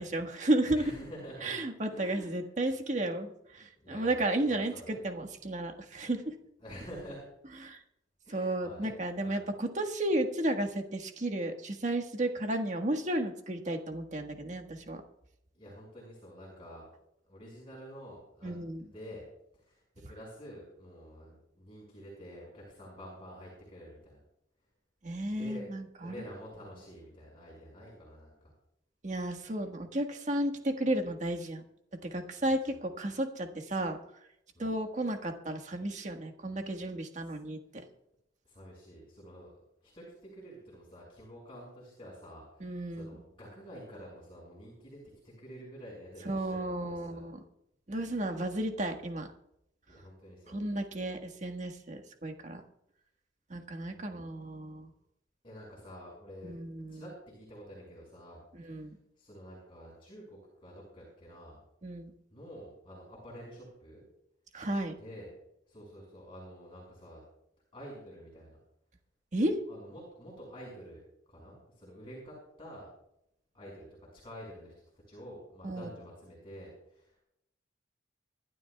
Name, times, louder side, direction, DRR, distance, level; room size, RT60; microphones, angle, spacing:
voice 1, 0.0-0.9 1.4-6.3 7.6-7.8 8.3-15.0 18.4-18.8 25.0-26.1 29.0-31.6 32.0-34.0 34.6-37.8 42.6-43.2 46.2-47.4 47.9-49.3 50.5-52.6 53.5-54.9 56.4-57.0 58.5-59.0 61.8-62.1 64.5-64.9 69.3-69.6 75.6-75.9, right 1 dB, 40° right, 4 dB, 1.5 m, -33 dB
voice 2, 0.7-1.6 1.9-2.5 3.8-5.0 6.6-7.2 8.2-9.0 9.2-9.5 15.5-16.9 17.3-19.3 19.5-24.2 25.3-25.7 26.0-28.5 32.4-32.8 34.5-34.7 37.2-37.3 38.4-39.5 39.8-47.2 49.9-50.6 54.0-54.3 55.4-56.6 56.9-58.9 59.2-61.6 62.3-64.0 65.0-65.3 65.7-67.2 67.7-68.6 69.7-71.0 71.3-72.9 73.5-73.9 74.1-74.7 75.1-77.2, equal, 30° left, -3 dB, 5.6 m, -49 dB
26.0 x 11.5 x 2.3 m, 0.78 s
head